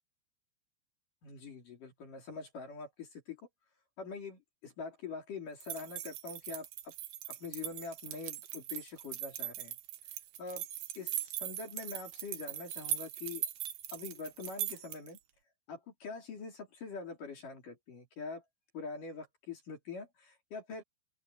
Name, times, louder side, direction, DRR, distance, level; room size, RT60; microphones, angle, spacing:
voice 1, 1.2-3.4 4.0-6.9 7.3-9.7 10.4-10.7 11.0-13.4 13.9-15.2 15.7-18.4 18.7-20.8, left 4 dB, 45° left, 4.7 m, -44 dB
sound 1, 5.6-15.2, right 11 dB, 65° right, 2.7 m, -40 dB
open air
omnidirectional pair, 5.4 m